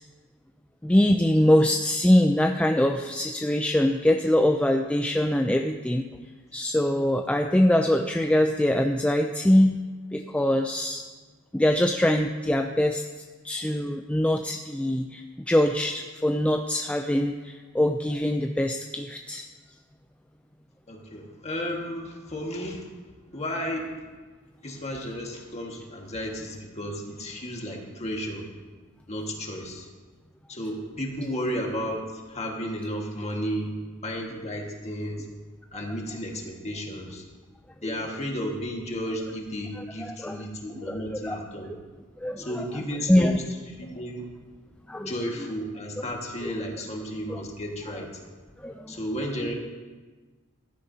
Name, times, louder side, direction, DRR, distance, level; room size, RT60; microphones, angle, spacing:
voice 1, 0.8-6.2 6.5-9.8 10.1-11.0 11.5-13.0 13.4-19.4 37.8-37.9 40.0-40.4 40.9-41.4 42.2-42.6 43.1-43.3 44.9-45.1 46.4-46.5 47.3-47.4 48.6-49.0, left 1 dB, 5° left, 4 dB, 0.3 m, -23 dB
voice 2, 20.9-22.9 23.3-24.0 24.6-28.5 29.1-29.9 30.5-33.8 34.0-35.3 35.7-37.2 37.8-41.7 42.4-43.3 43.8-44.3 45.0-48.1 48.9-49.5, equal, 30° left, 0 dB, 1.7 m, -33 dB
15.5 x 12.0 x 2.8 m, 1.4 s
head